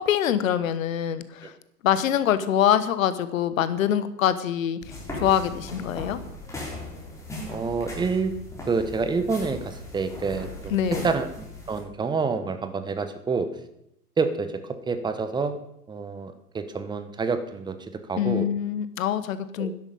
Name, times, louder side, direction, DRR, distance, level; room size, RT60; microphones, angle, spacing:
voice 1, 0.0-1.5 1.8-6.2 10.7-11.1 18.2-19.7, left 10 dB, 60° left, 13 dB, 1.2 m, -24 dB
sound 1, 4.8-11.8, left 1 dB, 5° left, 4.1 m, -38 dB
voice 2, 7.5-8.3 8.7-13.5 14.2-14.5 14.9-15.6 15.9-17.8 18.1-18.5 19.6-19.7, right 4 dB, 10° right, 9 dB, 0.9 m, -28 dB
12.0 x 10.5 x 5.3 m, 0.80 s
figure-of-eight pair, 110°, 47 cm